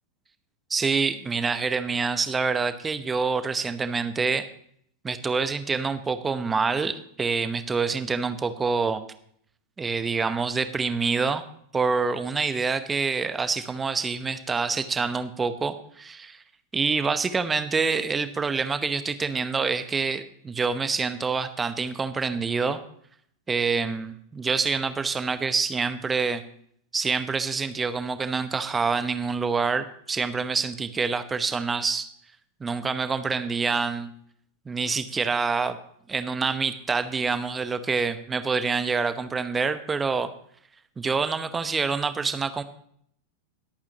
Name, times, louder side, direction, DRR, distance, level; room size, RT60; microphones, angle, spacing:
voice 1, 0.7-4.5 5.0-9.0 9.8-11.4 11.7-16.4 16.7-22.8 23.5-26.4 26.9-32.1 32.6-34.1 34.7-35.8 36.1-40.3 41.0-42.6, right 4 dB, 15° right, 11 dB, 0.9 m, -26 dB
21.5 x 8.7 x 2.9 m, 0.65 s
figure-of-eight pair, 90°, 0 cm